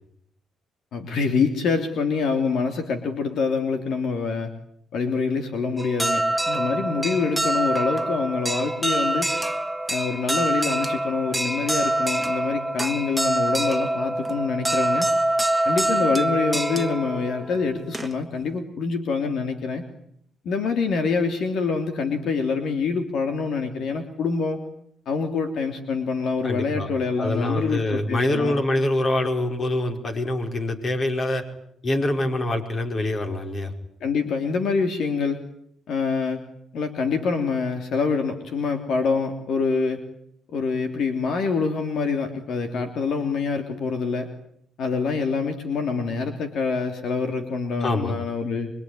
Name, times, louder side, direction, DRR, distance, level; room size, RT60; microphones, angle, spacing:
voice 1, 0.9-4.5 4.9-9.3 9.9-15.1 15.6-19.8 20.4-24.6 25.0-28.5 34.0-35.4 35.9-36.4 36.7-40.0 40.5-44.3 44.8-48.7, left 5 dB, 70° left, 6 dB, 3.2 m, -25 dB
sound 1, 5.8-18.4, right 1 dB, 5° right, 1.8 m, -25 dB
voice 2, 26.4-26.9 27.2-31.4 31.8-33.7 47.8-48.2, left 1 dB, 40° left, 5 dB, 5.3 m, -25 dB
25.0 x 24.0 x 9.9 m, 0.70 s
cardioid pair, 90°, 0 cm